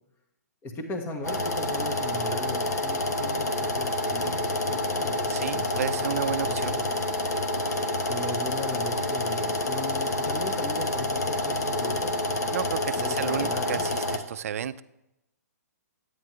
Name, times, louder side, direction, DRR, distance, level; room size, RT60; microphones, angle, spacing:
voice 1, 0.6-7.0 8.1-12.5 12.9-13.8, left 2 dB, 20° left, 3 dB, 1.4 m, -38 dB
sound 1, 1.2-14.2, left 1 dB, 75° left, 1.3 m, -28 dB
voice 2, 4.0-4.4 5.3-6.8 12.5-14.8, right 9 dB, 60° right, 15 dB, 0.5 m, -32 dB
10.5 x 9.4 x 3.2 m, 0.88 s
hypercardioid pair, 130°, 9 cm